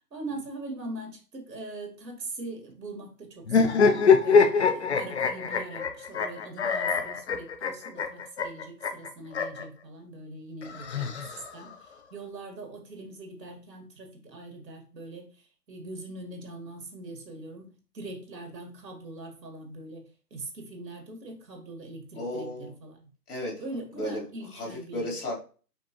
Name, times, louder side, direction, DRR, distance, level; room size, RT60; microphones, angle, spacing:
voice 1, 0.1-23.1 23.6-25.2, right 2 dB, 80° right, 3 dB, 1.9 m, -42 dB
sound 1, 3.5-9.6 10.6-11.7, left 5 dB, 45° left, 0.5 m, -24 dB
voice 2, 22.1-22.7 23.3-23.6 23.9-24.3 24.5-25.4, left 1 dB, 65° left, -1 dB, 2.3 m, -34 dB
5.2 x 3.4 x 3.0 m, 0.38 s
hypercardioid pair, 150°, 49 cm